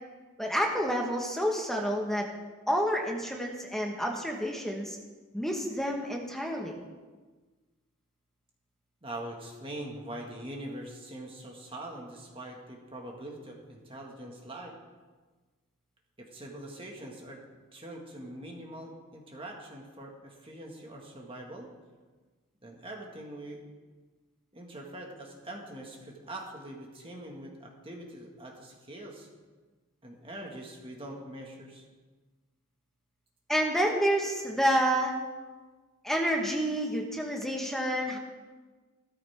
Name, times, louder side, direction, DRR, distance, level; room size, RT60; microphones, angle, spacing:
voice 1, 0.4-2.2 2.7-5.0 5.3-6.8 33.5-35.1 36.0-38.2, equal, ahead, 0 dB, 1.4 m, -29 dB
voice 2, 9.0-14.7 16.2-17.4 17.7-21.7 22.6-23.6 24.5-29.3 30.0-31.8, right 1 dB, 25° right, 0 dB, 1.8 m, -43 dB
16.0 x 14.0 x 3.6 m, 1.3 s
head